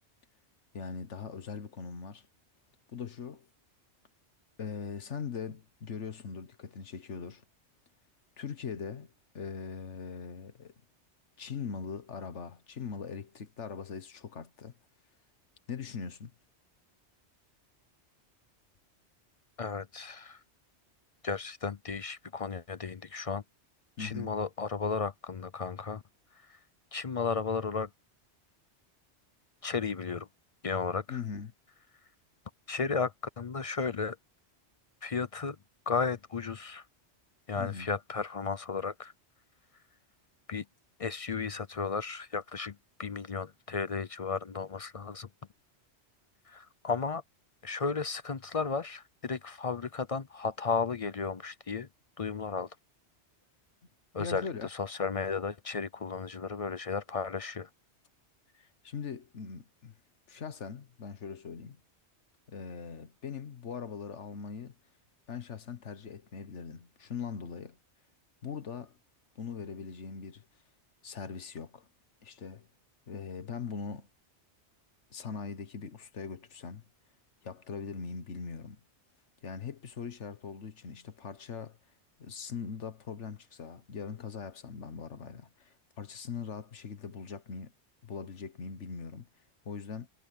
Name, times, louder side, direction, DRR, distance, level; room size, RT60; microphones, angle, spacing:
voice 1, 0.7-2.3 2.9-3.5 4.6-7.4 8.4-10.7 11.4-14.7 15.7-16.3 24.0-24.3 31.1-31.5 37.6-37.9 54.2-54.7 58.5-59.9 60.3-61.8 62.5-64.8 65.3-67.8 68.4-69.0 69.3-70.4 71.0-71.9 72.2-72.7 73.1-74.1 75.1-76.8 77.4-78.8 79.4-81.8 82.2-87.7 88.0-89.3 89.6-90.1, left 6 dB, 85° left, 1.6 m, -41 dB
voice 2, 19.6-20.4 21.2-23.4 24.0-26.0 26.5-26.6 26.9-27.9 29.6-30.3 30.6-31.2 32.7-34.2 35.0-35.6 35.9-36.8 37.5-39.1 40.5-40.6 41.0-45.3 46.5-47.2 47.6-51.9 52.2-52.8 54.1-57.7, left 5 dB, 40° left, 0.5 m, -34 dB
omnidirectional pair, 1.2 m